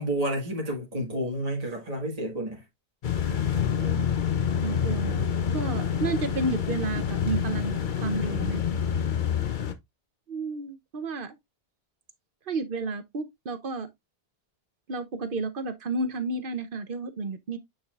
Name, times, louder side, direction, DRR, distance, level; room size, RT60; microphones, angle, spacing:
voice 1, 0.0-2.6, right 1 dB, 35° right, 1.8 m, -30 dB
sound 1, 3.0-9.7, left 8 dB, 50° left, 0.9 m, -27 dB
voice 2, 3.6-4.1 4.6-5.3 5.5-8.6 10.3-11.3 12.5-13.9 14.9-17.6, right 3 dB, 55° right, 1.0 m, -31 dB
8.6 x 4.8 x 2.4 m
omnidirectional pair, 1.1 m